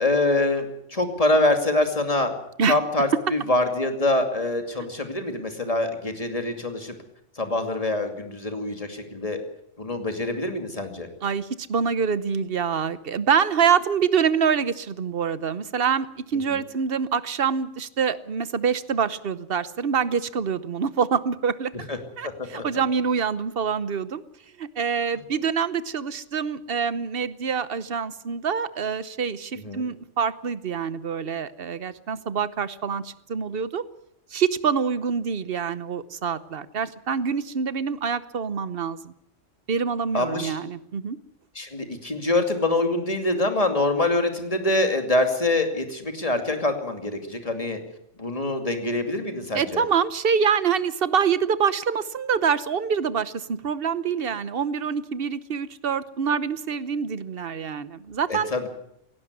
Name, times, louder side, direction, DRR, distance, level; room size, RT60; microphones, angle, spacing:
voice 1, 0.0-2.3 2.7-6.9 7.4-9.4 9.8-11.1 16.5-16.6 21.7-22.0 22.5-22.6 29.6-29.8 40.1-40.6 41.5-47.8 48.2-49.8 58.3-58.7, left 2 dB, 30° left, 6 dB, 2.6 m, -25 dB
voice 2, 11.2-21.7 22.2-24.2 24.6-33.8 34.3-39.1 39.7-41.2 49.5-58.5, right 6 dB, 50° right, 15 dB, 1.1 m, -25 dB
17.5 x 17.0 x 9.6 m, 0.74 s
omnidirectional pair, 1.3 m